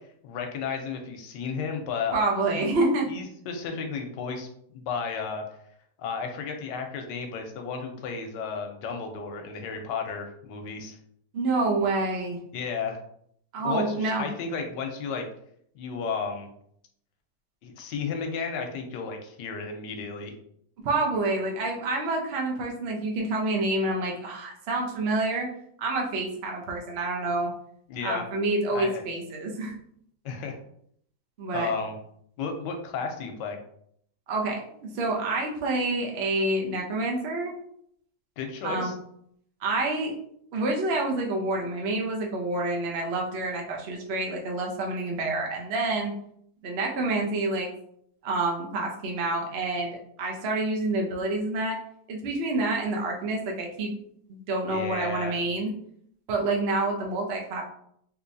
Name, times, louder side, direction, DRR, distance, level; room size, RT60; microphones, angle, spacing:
voice 1, 0.2-2.2 2.5-2.7 3.1-5.4 6.0-11.0 12.5-13.0 13.6-15.2 15.7-16.5 17.6-20.3 27.9-28.2 28.7-29.0 30.2-30.5 31.5-32.0 32.4-33.6 38.4-39.0 54.7-55.4, left 5 dB, 90° left, 4 dB, 1.3 m, -33 dB
voice 2, 2.1-3.1 11.3-12.4 13.5-14.3 20.8-25.5 25.8-27.5 28.0-29.7 31.4-31.7 34.3-37.5 38.6-38.9 39.6-40.1 40.5-46.1 46.6-47.7 48.2-51.8 52.1-53.9 54.3-55.7 56.3-57.6, right 2 dB, 55° right, 0 dB, 0.7 m, -28 dB
3.7 x 2.8 x 2.6 m, 0.68 s
omnidirectional pair, 1.9 m